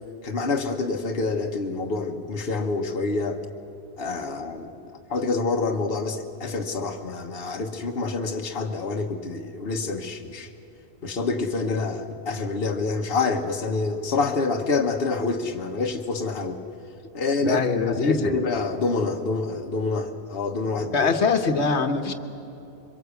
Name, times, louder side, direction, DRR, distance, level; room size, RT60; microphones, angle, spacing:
voice 1, 0.2-3.4 4.0-10.5 11.0-16.6 17.1-21.1, left 3 dB, 60° left, 2 dB, 1.4 m, -27 dB
voice 2, 17.4-18.3 20.9-22.1, left 4 dB, 80° left, 7 dB, 1.5 m, -23 dB
24.5 x 22.5 x 8.3 m, 2.8 s
omnidirectional pair, 1.1 m